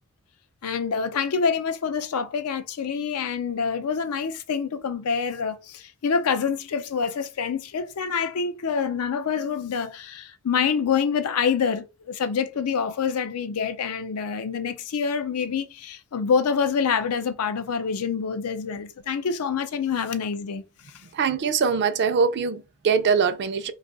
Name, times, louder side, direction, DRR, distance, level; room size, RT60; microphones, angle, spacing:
voice 1, 0.6-20.6, left 6 dB, 85° left, 0.5 m, -26 dB
voice 2, 21.0-23.7, right 6 dB, 50° right, 0.4 m, -23 dB
2.7 x 2.3 x 3.9 m
head